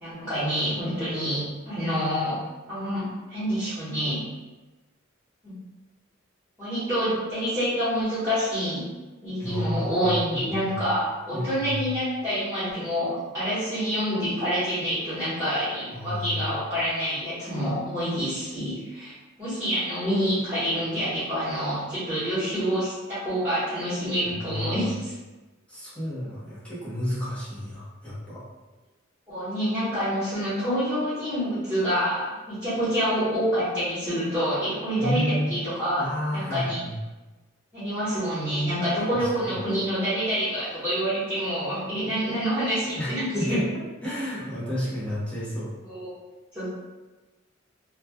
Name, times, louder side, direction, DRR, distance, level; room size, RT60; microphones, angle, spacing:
voice 1, 0.0-2.4 2.7-4.2 5.4-5.5 6.6-8.9 9.2-25.1 29.3-36.1 36.3-36.8 37.7-43.3 45.8-46.1 46.5-46.7, equal, 10° right, -14 dB, 1.1 m, -27 dB
voice 2, 9.4-10.9 11.3-11.9 15.9-16.5 24.2-24.8 25.7-28.4 35.0-35.5 36.0-36.9 39.2-39.5 43.0-43.6 44.0-45.7, equal, 5° left, -10 dB, 0.7 m, -31 dB
3.0 x 2.2 x 2.2 m, 1.2 s
head